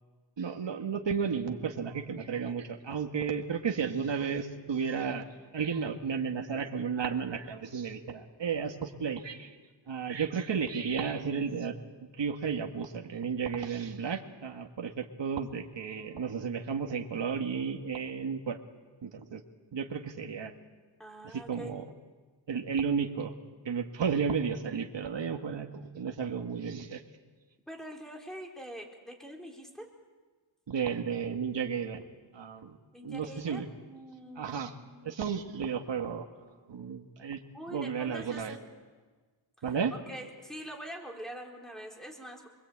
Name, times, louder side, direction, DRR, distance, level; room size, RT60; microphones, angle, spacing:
voice 1, 0.4-5.3 5.5-9.6 9.9-18.6 19.0-19.4 19.7-20.5 21.2-21.8 22.5-23.3 23.7-27.0 30.7-32.1 32.3-32.8 33.0-33.7 34.4-34.7 35.0-36.2 36.7-37.4 37.7-38.6 39.6-39.9, right 6 dB, 65° right, 3 dB, 1.8 m, -33 dB
voice 2, 21.0-21.7 27.7-29.9 32.9-35.1 37.5-38.6 40.1-42.5, right 1 dB, ahead, 1 dB, 4.3 m, -44 dB
27.5 x 22.0 x 8.7 m, 1.4 s
wide cardioid pair, 130°, 47 cm